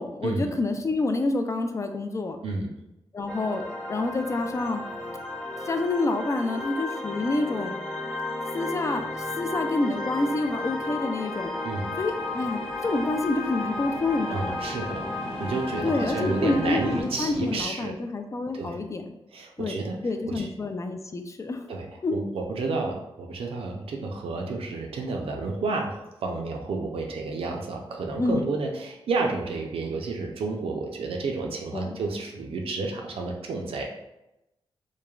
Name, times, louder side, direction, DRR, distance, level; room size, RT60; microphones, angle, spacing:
voice 1, 0.0-2.4 3.1-3.6 3.9-4.8 5.7-7.8 8.5-11.5 12.0-14.6 15.8-19.1 19.6-21.6 22.0-22.1 28.2-28.5 31.7-32.0, left 2 dB, 30° left, 6 dB, 0.3 m, -28 dB
sound 1, 3.3-17.0, left 2 dB, 5° left, 0.7 m, -33 dB
sound 2, 10.6-17.6, left 2 dB, 65° left, 0.7 m, -42 dB
voice 2, 11.6-12.0 14.3-15.1 15.4-17.9 18.5-18.8 19.3-20.0 20.3-20.5 21.7-33.8, right 3 dB, 80° right, 2 dB, 0.4 m, -31 dB
3.1 x 2.1 x 2.3 m, 0.93 s
cardioid pair, 60°, 10 cm